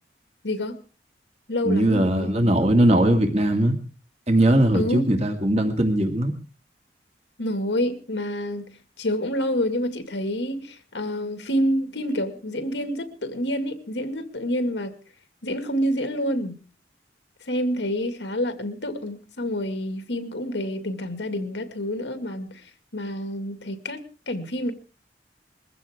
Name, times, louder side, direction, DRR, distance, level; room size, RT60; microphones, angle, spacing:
voice 1, 0.4-0.8 1.5-2.3 4.7-5.2 7.4-15.0 15.4-16.6 17.5-22.6 22.9-24.0 24.3-24.7, equal, 90° left, 2.1 m, -28 dB
voice 2, 1.6-3.8 4.3-6.3, right 1 dB, 40° right, 2.3 m, -20 dB
21.5 x 15.5 x 3.6 m
head